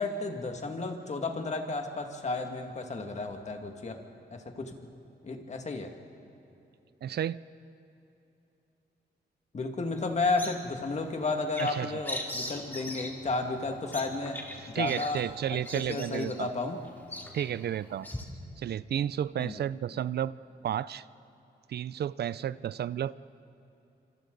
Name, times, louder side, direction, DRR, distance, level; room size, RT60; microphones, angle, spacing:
voice 1, 0.0-4.0 4.3-4.9 5.2-5.9 9.5-14.4 14.7-15.2 15.5-16.8 19.4-19.6, left 3 dB, 40° left, 4 dB, 2.1 m, -32 dB
voice 2, 7.0-7.4 11.6-12.0 14.7-16.5 17.3-18.1 18.6-20.3 20.6-21.0 21.7-23.1, right 10 dB, 65° right, 17 dB, 0.5 m, -32 dB
Bird vocalization bird call bird song, 9.9-18.2, left 1 dB, 10° left, 2.5 m, -42 dB
26.5 x 26.0 x 4.0 m, 2.9 s
cardioid pair, 90°, 18 cm